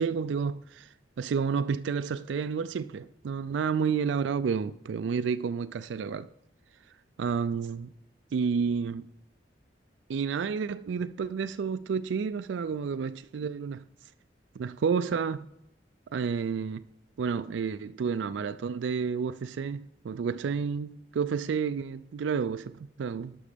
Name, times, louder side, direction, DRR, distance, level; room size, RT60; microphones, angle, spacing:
voice 1, 0.0-6.3 7.2-7.9 8.3-9.1 10.1-13.8 14.6-15.5 16.1-16.8 17.2-23.4, right 6 dB, 90° right, 0.4 m, -30 dB
12.0 x 6.1 x 5.1 m
head